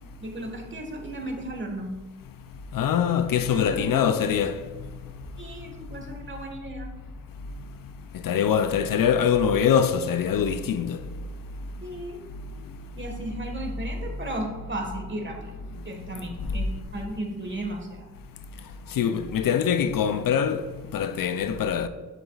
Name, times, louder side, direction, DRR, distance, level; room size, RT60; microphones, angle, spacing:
voice 1, 0.2-1.9 3.5-4.3 5.4-6.9 11.8-12.2 13.0-15.5 15.8-18.1, right 1 dB, 35° right, 1.6 m, -35 dB
voice 2, 2.7-4.6 8.2-11.0 19.0-20.6 20.9-21.9, left 8 dB, 75° left, 0.5 m, -23 dB
8.2 x 7.2 x 2.4 m
cardioid pair, 45°, 34 cm